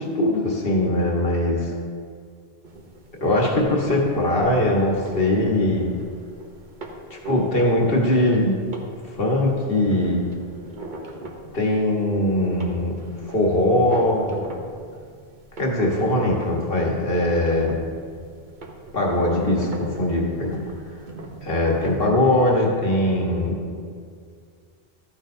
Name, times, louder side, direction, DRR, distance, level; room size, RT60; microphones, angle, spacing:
voice 1, 0.0-1.7 3.2-5.9 7.1-8.6 9.1-10.2 11.5-12.9 13.3-14.4 15.6-17.7 18.9-20.6 21.4-23.6, left 1 dB, 60° left, -2 dB, 1.8 m, -21 dB
sound 1, 2.6-22.1, right 2 dB, 50° right, 1.0 m, -40 dB
13.5 x 8.9 x 2.7 m, 2.1 s
omnidirectional pair, 1.1 m